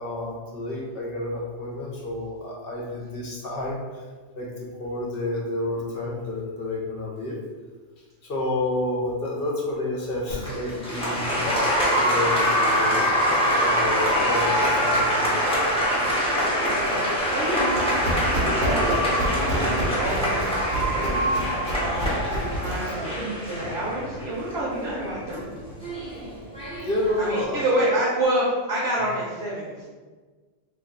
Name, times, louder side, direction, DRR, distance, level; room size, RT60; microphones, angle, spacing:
voice 1, 0.0-4.0 4.4-7.4 8.2-13.0 13.5-15.6 26.8-28.0, left 2 dB, 60° left, -2 dB, 0.8 m, -30 dB
Applause, 10.3-27.4, equal, 5° left, 0.5 m, -24 dB
voice 2, 17.3-25.5 27.2-29.8, right 1 dB, 60° right, -7 dB, 1.0 m, -28 dB
Run, 17.4-22.9, equal, 90° right, 1.1 m, -29 dB
2.6 x 2.2 x 3.7 m, 1.4 s
omnidirectional pair, 1.3 m